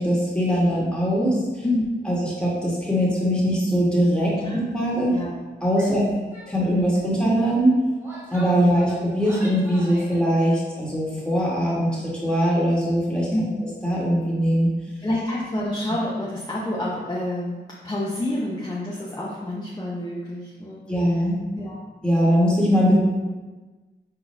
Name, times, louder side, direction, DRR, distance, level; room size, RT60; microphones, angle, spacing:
voice 1, 0.0-1.4 2.1-5.1 5.6-6.0 6.5-7.7 8.3-13.3 13.8-14.7 20.9-21.4 22.0-22.9, equal, 5° left, -6 dB, 1.5 m, -21 dB
voice 2, 1.6-2.2 4.4-4.6 4.9-5.4 5.8-6.2 13.3-13.7 15.0-21.3 21.6-21.8, left 1 dB, 20° left, -6 dB, 0.8 m, -29 dB
Female speech woman speaking / Yell, 5.7-6.0 6.3-6.5 6.8-7.1 7.8-10.2, right 1 dB, 10° right, 1.4 m, -41 dB
4.4 x 3.9 x 2.7 m, 1.2 s
cardioid pair, 60°, 19 cm